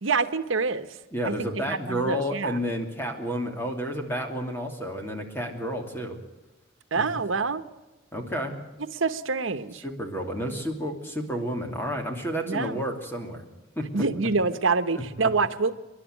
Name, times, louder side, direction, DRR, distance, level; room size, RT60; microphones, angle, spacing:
voice 1, 0.0-0.9 1.2-2.6 6.9-7.6 8.9-9.8 12.5-12.8 13.9-15.7, right 4 dB, 85° right, 11 dB, 1.1 m, -26 dB
voice 2, 1.1-6.2 6.9-7.1 8.1-8.5 9.8-13.4 13.8-14.0 15.2-15.3, equal, 10° left, 3 dB, 2.9 m, -31 dB
28.0 x 11.5 x 9.4 m, 1.1 s
head